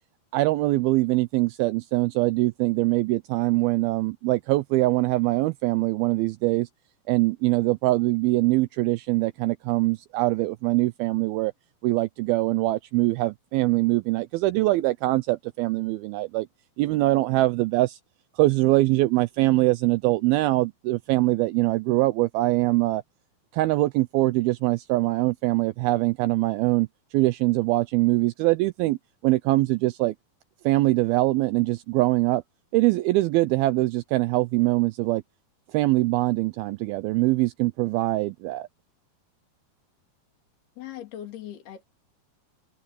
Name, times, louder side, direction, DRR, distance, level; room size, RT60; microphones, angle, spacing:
voice 1, 0.3-6.7 7.1-11.5 11.8-16.5 16.8-18.0 18.4-23.0 23.5-26.9 27.1-29.0 29.2-30.2 30.6-32.4 32.7-35.2 35.7-38.7, right 19 dB, 85° right, 2.1 m, -23 dB
voice 2, 40.8-41.8, left 11 dB, 65° left, 5.0 m, -39 dB
omnidirectional pair, 4.9 m